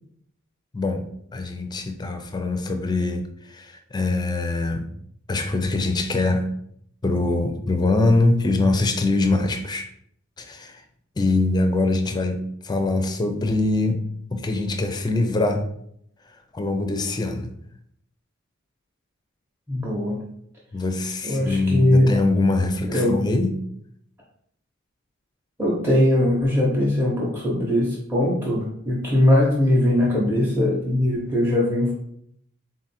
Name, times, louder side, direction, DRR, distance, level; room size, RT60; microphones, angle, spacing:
voice 1, 0.7-1.0 1.3-4.9 5.3-6.5 7.0-9.9 10.4-10.8 11.2-14.0 14.3-15.7 16.5-17.5 20.7-23.5, left 2 dB, 20° left, 5 dB, 0.4 m, -23 dB
voice 2, 19.7-20.2 21.2-22.1 22.9-23.2 25.6-31.9, left 1 dB, 10° right, -5 dB, 0.7 m, -20 dB
3.8 x 2.5 x 4.2 m, 0.69 s
head